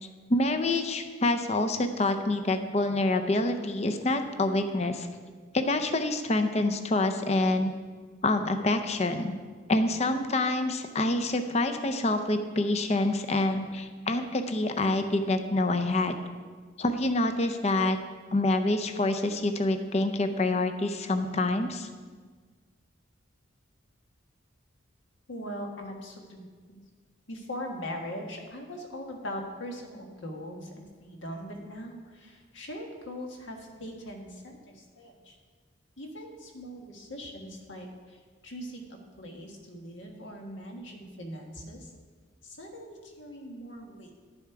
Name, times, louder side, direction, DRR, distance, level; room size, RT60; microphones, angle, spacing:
voice 1, 0.3-5.1 5.5-7.7 8.2-9.4 9.7-16.1 16.8-18.0 18.3-21.9, left 2 dB, 35° left, 7 dB, 0.5 m, -27 dB
voice 2, 25.3-26.8 27.3-35.4 36.0-41.9 42.4-44.2, equal, 75° left, 2 dB, 1.5 m, -41 dB
11.5 x 7.1 x 4.7 m, 1.5 s
head